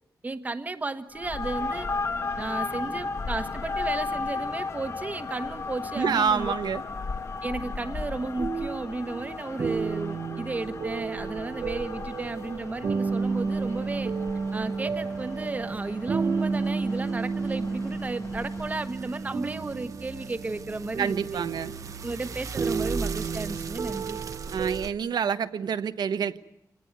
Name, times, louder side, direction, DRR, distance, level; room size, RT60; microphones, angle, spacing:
voice 1, 0.2-1.9 2.4-6.5 7.4-14.1 14.5-21.4 22.0-24.2, right 3 dB, 25° right, 10 dB, 1.3 m, -34 dB
sound 1, 1.1-19.0, left 4 dB, 40° left, 1.3 m, -35 dB
voice 2, 6.0-6.8 21.0-21.7 24.5-26.4, right 7 dB, 90° right, 11 dB, 1.2 m, -27 dB
sound 2, 7.6-24.9, right 5 dB, 55° right, 1.0 m, -32 dB
27.5 x 19.0 x 9.6 m, 0.81 s
wide cardioid pair, 180°, 7 cm